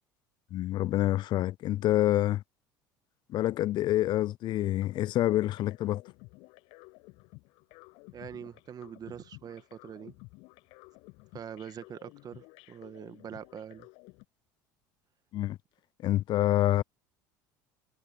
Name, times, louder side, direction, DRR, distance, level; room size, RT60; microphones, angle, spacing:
voice 1, 0.5-2.4 3.3-6.0 15.3-15.6 16.0-16.8, left 14 dB, 50° left, 0.4 m, -27 dB
sound 1, 4.6-14.3, left 27 dB, 65° left, 7.9 m, -54 dB
voice 2, 8.1-10.1 11.3-13.9, right 8 dB, 40° right, 2.1 m, -44 dB
hypercardioid pair, 70°, 10 cm